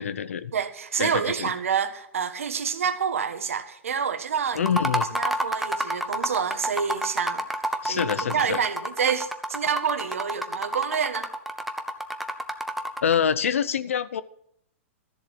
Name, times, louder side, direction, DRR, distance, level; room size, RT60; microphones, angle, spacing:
voice 1, 0.0-0.5 1.0-1.5 4.5-5.1 7.8-8.6 13.0-14.2, left 8 dB, 85° left, 0.8 m, -26 dB
voice 2, 0.5-4.7 5.1-7.4 7.8-11.3, right 7 dB, 85° right, 1.4 m, -28 dB
sound 1, 4.6-13.2, right 1 dB, ahead, 1.0 m, -29 dB
13.5 x 7.5 x 7.6 m
hypercardioid pair, 125°, 7 cm